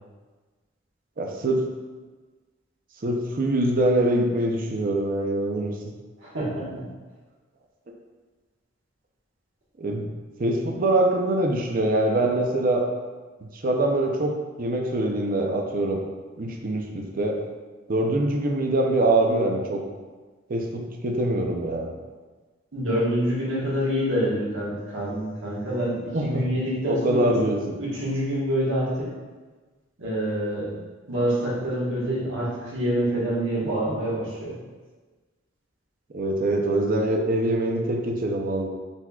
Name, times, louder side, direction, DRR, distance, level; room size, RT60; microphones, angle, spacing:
voice 1, 1.2-1.6 3.0-5.7 9.8-10.1 10.4-12.8 13.5-14.3 14.6-16.0 16.4-17.4 17.9-19.8 20.5-21.9 26.1-26.4 26.9-27.8 36.1-38.7, right 1 dB, 45° right, 1 dB, 0.5 m, -24 dB
voice 2, 6.2-6.8 22.7-27.3 27.8-29.1 30.0-30.8 31.1-34.6, equal, 80° right, -6 dB, 1.4 m, -26 dB
4.4 x 4.2 x 2.3 m, 1.4 s
head